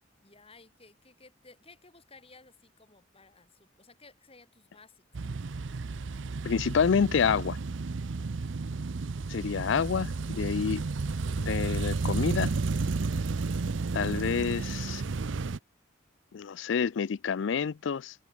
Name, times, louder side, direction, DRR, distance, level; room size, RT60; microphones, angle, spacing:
voice 1, 0.2-5.3 8.5-9.0, left 3 dB, 30° left, 6.4 m, -57 dB
sound 1, 5.1-15.6, right 3 dB, 70° right, 0.6 m, -32 dB
voice 2, 6.4-7.6 9.3-10.8 11.4-12.5 13.9-15.0 16.3-18.1, left 6 dB, 70° left, 0.4 m, -28 dB
head